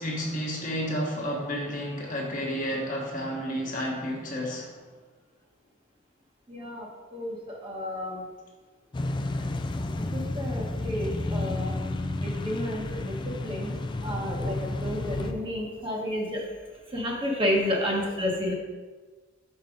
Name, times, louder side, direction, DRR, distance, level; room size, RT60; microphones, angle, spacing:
voice 1, 0.0-4.8, equal, 45° left, -2 dB, 1.2 m, -31 dB
voice 2, 6.5-8.3 10.0-11.8 12.2-13.8 14.0-16.5 16.9-18.5, left 1 dB, 30° right, -2 dB, 1.1 m, -31 dB
sound 1, 8.9-15.3, left 2 dB, 25° left, 0.3 m, -31 dB
5.4 x 4.0 x 5.0 m, 1.4 s
head